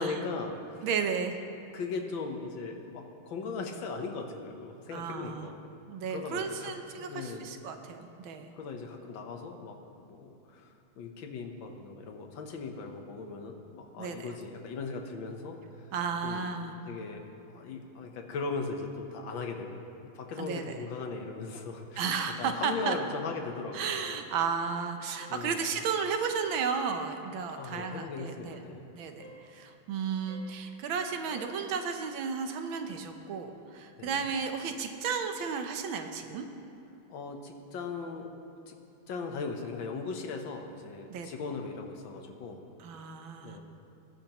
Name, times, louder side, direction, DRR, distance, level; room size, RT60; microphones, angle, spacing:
voice 1, 0.0-0.8 1.7-5.5 6.1-6.7 7.0-7.6 8.5-15.9 16.2-16.5 16.9-17.2 17.5-19.8 20.1-22.1 22.4-24.1 25.3-25.7 27.5-28.9 34.0-34.2 37.1-38.3 38.7-38.8 39.1-42.6 43.4-43.6, left 4 dB, 75° left, 4 dB, 1.8 m, -38 dB
voice 2, 0.8-1.4 4.9-5.5 5.9-8.5 14.0-14.3 15.9-16.8 20.4-20.7 22.0-23.0 23.7-28.6 28.9-36.4 41.1-41.3 42.8-43.6, right 6 dB, 80° right, 6 dB, 1.7 m, -33 dB
sound 1, 24.0-24.2 24.6-24.8 25.2-25.4 25.8-26.1 26.4-26.6 27.7-28.0 29.2-29.4 30.3-30.5 31.3-31.5, left 1 dB, 50° left, 3.2 m, -50 dB
22.0 x 10.0 x 3.0 m, 2.9 s
omnidirectional pair, 2.2 m